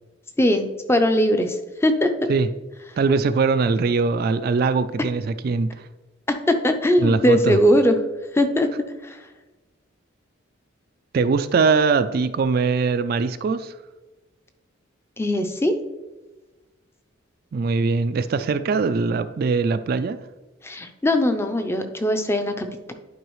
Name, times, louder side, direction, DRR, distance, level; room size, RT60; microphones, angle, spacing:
voice 1, 0.4-2.3 6.5-8.0 8.3-8.7 9.0-9.2 15.2-15.7 20.6-22.9, left 1 dB, 10° left, 7 dB, 0.5 m, -20 dB
voice 2, 3.0-5.9 7.0-7.6 11.1-13.7 17.5-20.2, right 4 dB, 45° right, 11 dB, 0.3 m, -21 dB
11.0 x 4.7 x 3.1 m, 1.2 s
head